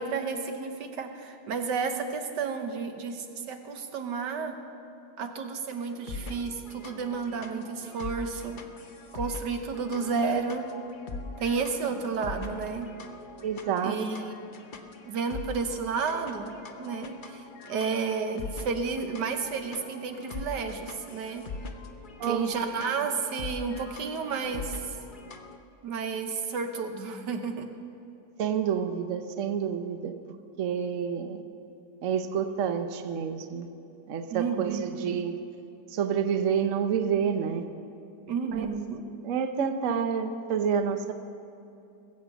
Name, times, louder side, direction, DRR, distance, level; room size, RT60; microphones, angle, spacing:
voice 1, 0.0-4.6 5.2-8.6 9.1-10.7 11.4-12.9 13.8-14.3 15.0-16.5 16.8-21.5 22.2-24.9 25.8-27.7 34.3-35.0 38.3-39.0, right 5 dB, 85° right, 6 dB, 1.7 m, -31 dB
sound 1, 5.9-25.6, left 4 dB, 40° left, 0.7 m, -42 dB
voice 2, 13.4-14.0 22.2-22.4 28.4-30.1 30.6-31.4 32.0-33.7 34.1-35.4 35.9-37.6 38.5-38.7 39.2-41.1, right 7 dB, 55° right, 7 dB, 1.1 m, -28 dB
21.0 x 8.1 x 7.1 m, 2.7 s
omnidirectional pair, 1.8 m